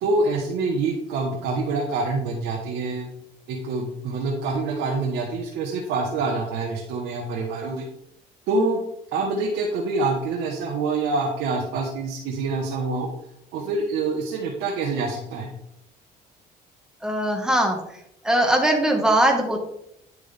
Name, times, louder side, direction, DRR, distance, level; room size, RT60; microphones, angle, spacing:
voice 1, 0.0-3.1 3.5-7.8 8.5-8.8 9.1-13.1 13.5-15.5, right 3 dB, 85° right, -1 dB, 1.4 m, -26 dB
voice 2, 17.0-17.8 18.2-19.6, right 1 dB, 5° right, 2 dB, 1.7 m, -20 dB
9.7 x 6.2 x 3.5 m, 0.80 s
cardioid pair, 110°, 17 cm